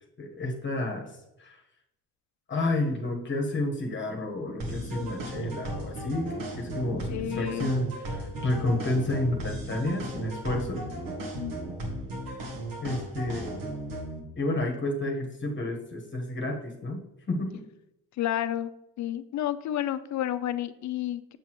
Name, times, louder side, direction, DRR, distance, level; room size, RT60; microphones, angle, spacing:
voice 1, 0.2-1.1 1.4-1.6 2.5-10.8 12.3-12.4 12.8-13.6 14.4-17.0 17.3-17.6, left 2 dB, 30° left, 2 dB, 1.2 m, -30 dB
sound 1, 4.6-14.2, right 1 dB, 70° right, 1.7 m, -36 dB
voice 2, 7.1-7.7 11.4-11.5 18.2-18.7 19.0-21.4, left 12 dB, 50° left, 13 dB, 0.5 m, -30 dB
6.9 x 5.9 x 3.0 m, 0.86 s
cardioid pair, 95°, 36 cm